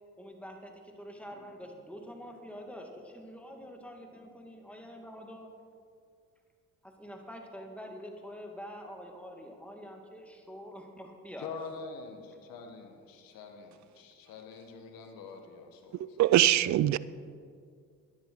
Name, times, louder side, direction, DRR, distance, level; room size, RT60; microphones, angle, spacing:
voice 1, 0.2-5.5 6.8-11.5, equal, 5° left, 2.1 m, -46 dB
voice 2, 11.4-15.9, left 5 dB, 85° left, 1.4 m, -45 dB
voice 3, 16.2-17.0, right 13 dB, 55° right, 0.5 m, -22 dB
12.0 x 10.0 x 4.7 m
supercardioid pair, 60°, 34 cm